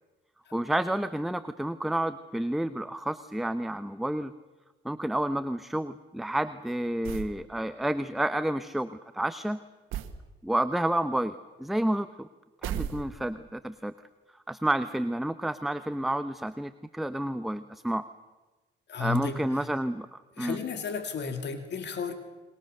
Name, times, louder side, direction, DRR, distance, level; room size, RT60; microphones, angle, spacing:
voice 1, 0.5-4.3 4.8-9.6 10.4-12.3 12.6-13.9 14.5-18.0 19.0-20.6, right 1 dB, ahead, 11 dB, 0.8 m, -30 dB
sound 1, 7.0-7.4 9.9-10.2 12.6-13.4, right 9 dB, 90° right, 1.5 m, -35 dB
voice 2, 18.9-19.4 20.4-22.1, left 6 dB, 60° left, 7 dB, 2.3 m, -33 dB
28.0 x 22.5 x 6.6 m, 1.2 s
cardioid pair, 90°, 20 cm